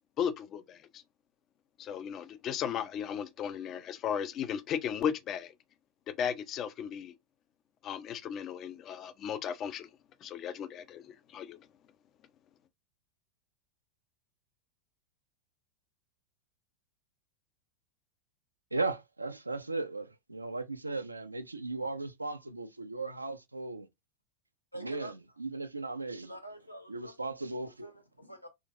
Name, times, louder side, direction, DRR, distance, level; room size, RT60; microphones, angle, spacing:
voice 1, 0.2-1.0 1.8-5.5 6.1-7.1 7.8-9.9 10.2-11.6, left 8 dB, 30° left, 0.4 m, -35 dB
voice 2, 18.7-23.9 24.8-26.3 26.9-27.9, right 3 dB, 80° right, 0.4 m, -37 dB
voice 3, 24.7-25.1 26.2-27.2 27.5-28.5, right 1 dB, 90° left, 0.7 m, -47 dB
3.7 x 2.5 x 2.4 m
figure-of-eight pair, 90°, 0 cm